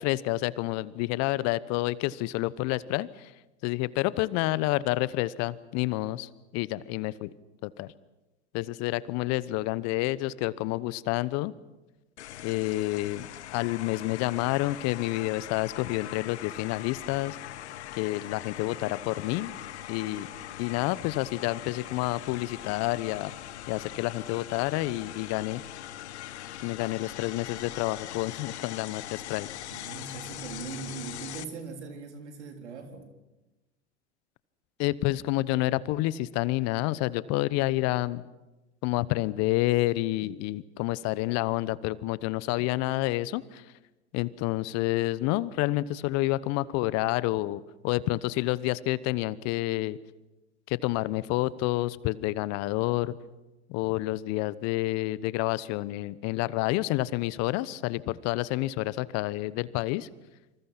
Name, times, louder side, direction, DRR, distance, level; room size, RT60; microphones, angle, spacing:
voice 1, 0.0-3.3 3.6-7.3 7.6-7.9 8.5-11.5 12.4-13.3 13.5-17.4 17.9-19.5 19.9-20.3 20.6-23.3 23.7-25.6 26.6-29.5 34.8-38.2 38.8-43.6 44.1-50.0 50.7-53.2 53.7-60.1, left 18 dB, 50° left, 18 dB, 1.1 m, -29 dB
sound 1, 12.2-31.4, left 13 dB, 75° left, 1.3 m, -41 dB
voice 2, 29.7-33.1, right 5 dB, 75° right, 5 dB, 4.0 m, -40 dB
27.0 x 26.5 x 5.9 m, 1.1 s
hypercardioid pair, 90°, 35 cm